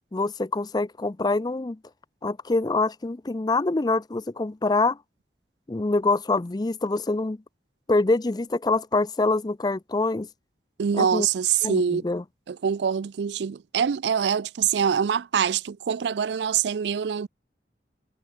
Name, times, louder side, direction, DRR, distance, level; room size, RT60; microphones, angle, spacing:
voice 1, 0.1-1.8 2.2-5.0 5.7-7.4 7.9-10.3 10.9-11.3 11.6-12.2, left 3 dB, 25° left, 0.5 m, -25 dB
voice 2, 10.8-12.0 12.5-17.3, right 7 dB, 75° right, 0.4 m, -24 dB
head